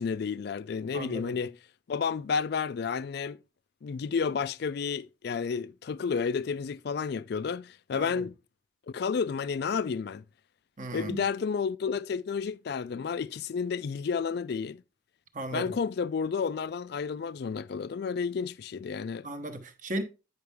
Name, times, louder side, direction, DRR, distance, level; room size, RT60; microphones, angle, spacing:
voice 1, 0.0-1.6 1.9-3.4 3.8-8.3 8.9-10.2 10.9-14.8 15.5-19.3, left 5 dB, 50° left, 0.3 m, -31 dB
voice 2, 0.9-1.3 7.9-8.2 10.8-11.2 15.3-15.6 19.2-20.0, right 1 dB, 40° right, 1.0 m, -36 dB
9.4 x 5.5 x 3.5 m
head